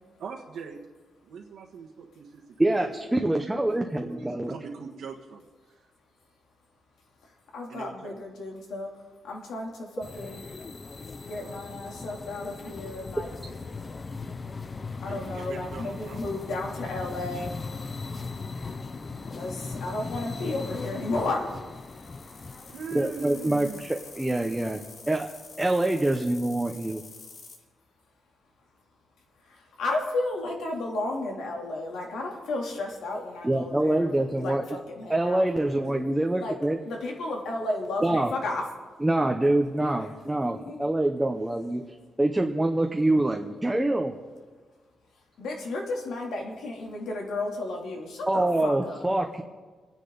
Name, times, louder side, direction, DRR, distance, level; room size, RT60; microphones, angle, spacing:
voice 1, 0.2-0.8 1.2-2.4 3.1-5.9 7.7-8.2 11.4-11.5 15.0-16.2 22.3-22.4 22.7-23.9, right 5 dB, 75° right, -2 dB, 1.4 m, -42 dB
voice 2, 2.6-4.5 22.9-24.8 25.1-25.3 25.6-27.0 33.4-34.6 35.1-36.8 38.0-38.3 39.0-41.9 42.2-44.2 48.3-49.4, right 1 dB, 10° right, 3 dB, 0.7 m, -25 dB
voice 3, 7.5-8.9 9.2-10.4 11.2-13.3 15.0-17.5 19.3-19.5 19.8-21.4 29.8-35.4 36.4-36.5 36.9-38.6 40.6-40.8 45.4-49.1, left 2 dB, 80° left, 0 dB, 2.9 m, -33 dB
sound 1, 10.0-25.3, left 4 dB, 25° left, 0.6 m, -39 dB
sound 2, 21.7-27.6, left 4 dB, 50° left, 2.0 m, -48 dB
28.5 x 9.9 x 4.0 m, 1.4 s
wide cardioid pair, 160°, 0 cm